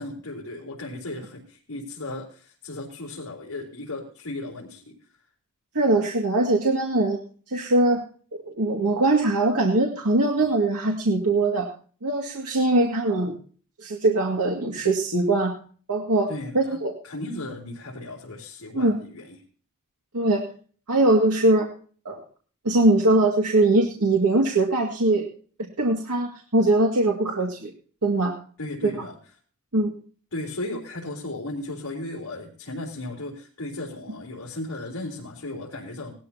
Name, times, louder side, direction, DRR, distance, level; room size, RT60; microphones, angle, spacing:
voice 1, 0.0-5.0 16.3-16.8 17.0-19.4 28.6-29.2 30.3-36.1, left 2 dB, 65° left, -2 dB, 3.6 m, -35 dB
voice 2, 5.7-7.2 7.5-8.0 8.5-11.7 12.0-13.4 13.8-15.6 15.9-16.3 16.5-16.9 18.7-19.0 20.1-20.4 20.9-21.7 22.1-22.2 22.6-25.3 25.8-27.7 28.0-28.4 28.8-29.1 29.7-29.9, right 2 dB, 90° right, 0 dB, 2.1 m, -21 dB
19.5 x 13.0 x 2.9 m, 0.42 s
head